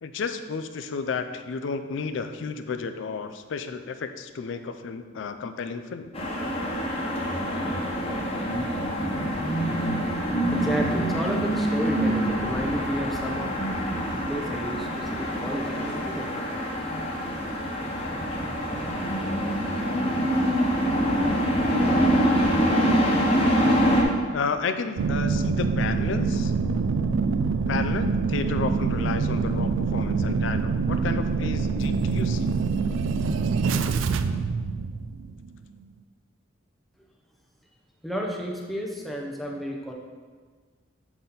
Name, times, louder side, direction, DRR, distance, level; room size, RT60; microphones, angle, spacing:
voice 1, 0.0-6.1 24.3-26.5 27.7-32.6, left 5 dB, 65° left, 9 dB, 0.4 m, -32 dB
sound 1, 6.1-24.0, equal, 30° left, 0.8 m, -25 dB
voice 2, 10.5-13.5 14.3-16.3 38.0-39.9, equal, ahead, -1 dB, 0.6 m, -31 dB
sound 2, 25.0-35.5 35.8-35.9, right 4 dB, 75° right, 0.3 m, -25 dB
7.0 x 4.1 x 3.8 m, 1.5 s
head